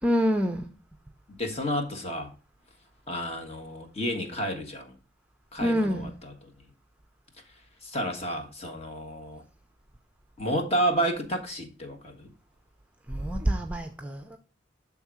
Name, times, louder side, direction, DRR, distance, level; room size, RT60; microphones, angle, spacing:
voice 1, 0.0-0.7 5.6-6.1 13.1-14.4, equal, 5° right, 0.6 m, -26 dB
voice 2, 1.4-2.3 3.1-4.9 5.5-6.3 7.8-9.4 10.4-12.3, equal, 35° left, 1.4 m, -30 dB
6.7 x 3.7 x 6.1 m
head